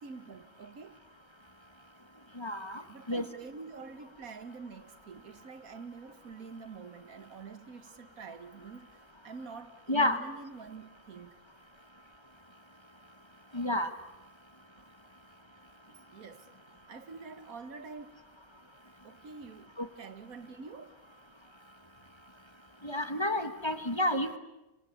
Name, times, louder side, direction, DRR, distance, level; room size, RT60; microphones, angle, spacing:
voice 1, 0.0-1.0 2.9-8.9 9.2-11.3 15.9-16.5 16.9-18.2 19.0-19.7 20.0-21.0, right 4 dB, 80° right, 1.8 m, -46 dB
voice 2, 2.4-2.8 3.1-3.2 9.9-10.2 13.5-13.9 22.8-24.4, left 1 dB, 20° left, 1.4 m, -29 dB
27.0 x 25.0 x 8.4 m
omnidirectional pair, 1.5 m